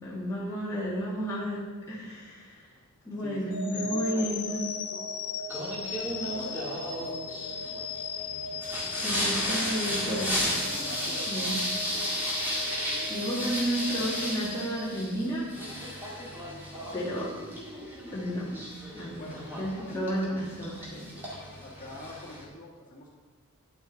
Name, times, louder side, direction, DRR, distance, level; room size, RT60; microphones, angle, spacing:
voice 1, 0.0-2.7 3.0-4.6 9.0-10.6 11.3-11.6 13.1-15.5 15.7-16.3 16.9-17.3 18.1-18.5 18.9-21.3, equal, 15° left, -8 dB, 1.5 m, -32 dB
voice 2, 3.2-5.2 5.5-7.9 8.5-8.9 10.7-11.6 16.4-17.3 19.2-20.3 21.3-23.1, left 1 dB, 35° left, -4 dB, 1.9 m, -47 dB
sound 1, 3.5-15.6, left 4 dB, 90° left, 1.0 m, -37 dB
Singing, 5.5-22.4, equal, 10° right, 2.1 m, -34 dB
10.0 x 6.7 x 3.9 m, 1.3 s
head